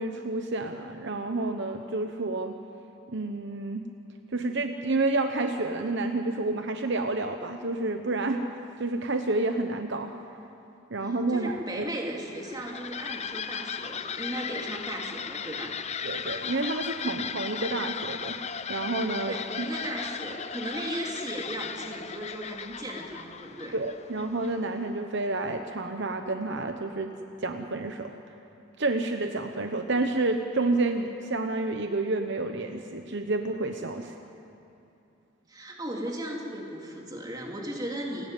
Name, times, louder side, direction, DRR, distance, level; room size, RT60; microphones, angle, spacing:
voice 1, 0.0-2.6 3.1-3.9 4.3-8.4 8.8-10.2 10.9-11.8 16.0-18.4 18.7-19.4 23.7-27.1 27.4-28.2 28.8-34.2, right 2 dB, 60° right, 6 dB, 1.0 m, -29 dB
voice 2, 11.0-15.8 19.2-23.8 35.5-38.3, right 1 dB, 20° right, 0 dB, 2.8 m, -36 dB
sound 1, 12.3-24.8, left 7 dB, 30° left, 0.6 m, -36 dB
29.0 x 13.0 x 9.1 m, 2.7 s
head